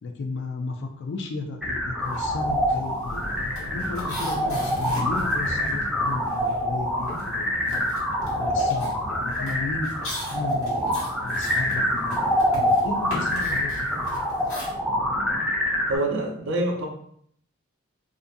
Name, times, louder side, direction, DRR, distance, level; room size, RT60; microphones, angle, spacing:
voice 1, 0.0-7.7 8.3-9.9 10.3-13.7, left 3 dB, 60° left, 4 dB, 0.4 m, -34 dB
sound 1, 1.6-16.0, equal, ahead, 0.5 m, -26 dB
sound 2, 2.0-2.3 2.6-6.7 7.0-14.7, left 1 dB, 85° left, 1.1 m, -39 dB
voice 2, 15.9-16.9, right 2 dB, 60° right, 2 dB, 0.5 m, -25 dB
2.5 x 2.3 x 2.6 m, 0.65 s
head